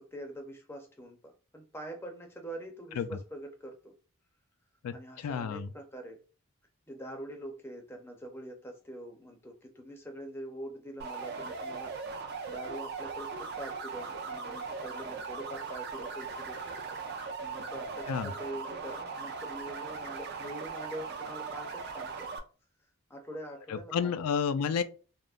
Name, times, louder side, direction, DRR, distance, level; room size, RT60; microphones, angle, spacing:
voice 1, 0.0-3.9 4.9-6.2 6.9-12.0 12.5-16.8 17.4-22.3 23.1-24.2, right 1 dB, 10° left, 0.5 m, -44 dB
voice 2, 4.8-5.7 18.1-18.3 23.7-24.8, left 6 dB, 85° left, 0.3 m, -31 dB
sound 1, 11.0-22.4, right 4 dB, 45° right, 0.4 m, -39 dB
3.5 x 2.0 x 2.4 m
head